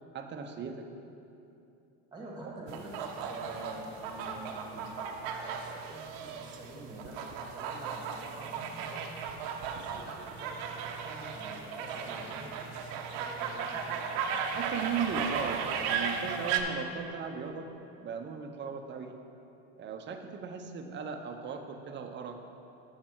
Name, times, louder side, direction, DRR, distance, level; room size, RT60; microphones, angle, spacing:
voice 1, 0.1-0.9 2.4-2.6 14.5-17.7 18.0-19.2 19.8-22.4, right 6 dB, 35° right, 5 dB, 0.8 m, -37 dB
voice 2, 2.1-2.9 3.3-9.1 9.6-13.9, right 1 dB, 15° right, -1 dB, 1.9 m, -47 dB
sound 1, 2.7-16.6, right 6 dB, 75° right, 0.8 m, -36 dB
8.1 x 6.6 x 4.5 m, 2.8 s
supercardioid pair, 100°, 32 cm